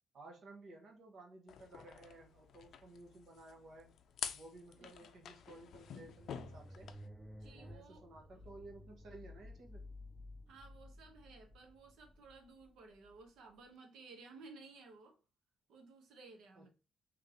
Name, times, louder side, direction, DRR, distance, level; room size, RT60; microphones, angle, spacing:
voice 1, 0.1-3.9 4.3-6.9 7.5-9.8 16.5-16.6, right 2 dB, 60° right, 1.1 m, -55 dB
sound 1, 1.5-7.1, left 8 dB, 70° left, 0.4 m, -49 dB
sound 2, 5.4-13.6, left 1 dB, 5° right, 0.5 m, -55 dB
voice 2, 7.4-8.0 10.5-15.1 15.7-16.7, right 3 dB, 85° right, 1.1 m, -57 dB
3.3 x 3.2 x 3.8 m
cardioid pair, 115°, 0 cm